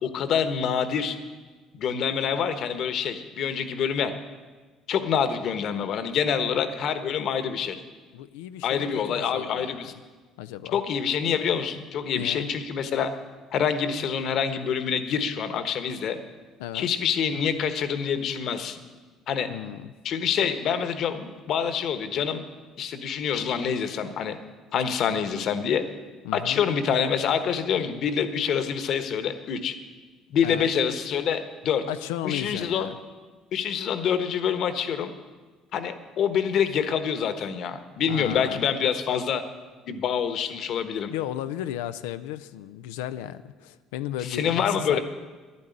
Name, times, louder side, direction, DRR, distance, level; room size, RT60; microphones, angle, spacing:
voice 1, 0.0-1.2 1.7-4.1 4.9-7.8 8.6-9.9 10.7-13.1 13.5-16.2 16.7-18.8 19.3-19.5 20.0-22.4 22.8-24.4 24.7-25.8 26.3-29.7 30.3-31.8 32.2-32.9 33.5-35.1 35.7-39.4 39.9-41.1 44.3-45.0, left 7 dB, 60° left, 10 dB, 1.3 m, -26 dB
voice 2, 8.1-9.8 10.4-10.8 12.2-12.5 16.6-16.9 19.5-19.9 26.2-26.6 30.4-30.7 31.9-33.0 38.1-38.7 41.1-45.0, left 12 dB, 90° left, 11 dB, 0.5 m, -34 dB
11.0 x 9.8 x 9.2 m, 1.4 s
supercardioid pair, 80°, 0 cm